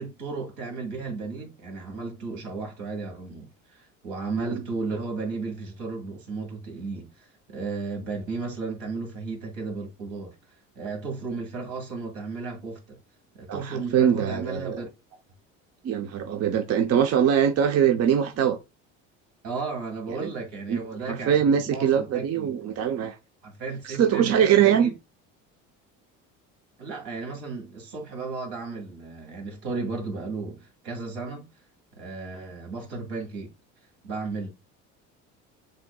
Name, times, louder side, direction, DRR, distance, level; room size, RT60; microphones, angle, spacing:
voice 1, 0.0-10.3 10.8-13.0 13.3-14.9 19.4-22.8 23.4-24.9 26.8-31.5 32.0-33.5 34.0-34.5, right 4 dB, 75° right, 2.1 m, -34 dB
voice 2, 13.5-14.8 15.8-18.6 20.2-20.3 20.7-20.8 21.1-23.2 23.8-24.9, right 8 dB, 40° right, 0.6 m, -22 dB
7.6 x 2.7 x 2.3 m
hypercardioid pair, 70°, 38 cm